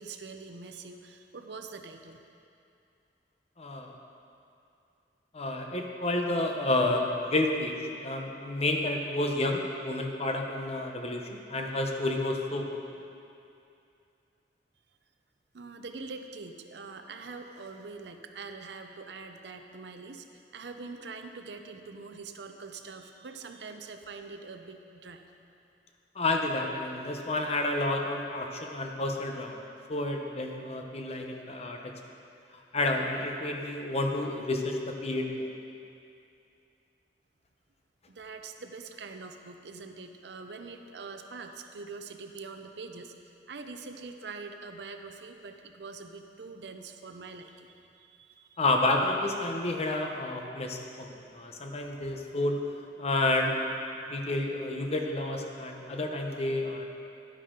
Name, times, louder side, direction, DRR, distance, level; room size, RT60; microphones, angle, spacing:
voice 1, 0.0-2.2 15.5-20.3 20.5-25.3 38.1-43.1 43.5-48.6, right 4 dB, 70° right, 6 dB, 0.6 m, -44 dB
voice 2, 3.6-3.9 5.3-7.7 8.0-13.0 26.1-29.6 29.9-31.9 32.7-35.5 48.6-52.6 53.0-53.6 54.1-56.8, left 2 dB, 35° left, 2 dB, 0.9 m, -30 dB
11.0 x 9.7 x 3.8 m, 2.6 s
head